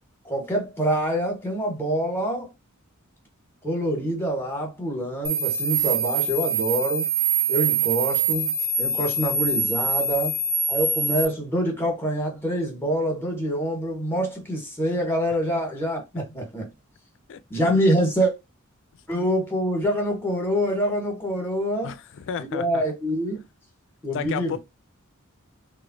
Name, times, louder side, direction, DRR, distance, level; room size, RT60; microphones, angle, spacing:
voice 1, 0.2-2.5 3.6-7.1 7.5-10.4 10.7-16.7 17.5-18.3 19.1-21.9 22.4-23.4 24.0-24.6, equal, 10° left, 1.0 m, -25 dB
sound 1, 5.2-11.2, right 4 dB, 15° right, 0.6 m, -24 dB
voice 2, 17.3-17.7 21.8-22.8 24.1-24.6, left 7 dB, 60° left, 0.4 m, -33 dB
3.1 x 2.1 x 2.4 m
head